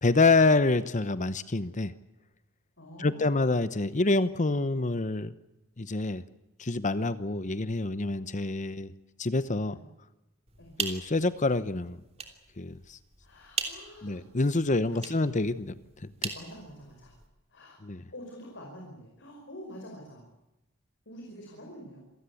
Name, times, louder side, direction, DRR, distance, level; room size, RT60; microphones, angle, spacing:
voice 1, 0.0-1.9 3.0-5.3 5.8-6.2 6.6-8.9 9.2-9.8 10.8-12.0 12.6-13.0 14.0-15.8 16.2-16.3 17.8-18.0, left 3 dB, 35° left, 14 dB, 0.9 m, -27 dB
voice 2, 2.8-3.5 9.7-9.8 10.6-10.8 13.2-14.2 14.6-15.4 16.3-17.2 17.5-17.8 18.1-20.3 21.1-22.0, equal, 55° left, 0 dB, 5.3 m, -47 dB
sound 1, 10.5-17.3, right 5 dB, 30° right, 3.2 m, -40 dB
27.0 x 18.0 x 8.4 m, 0.94 s
head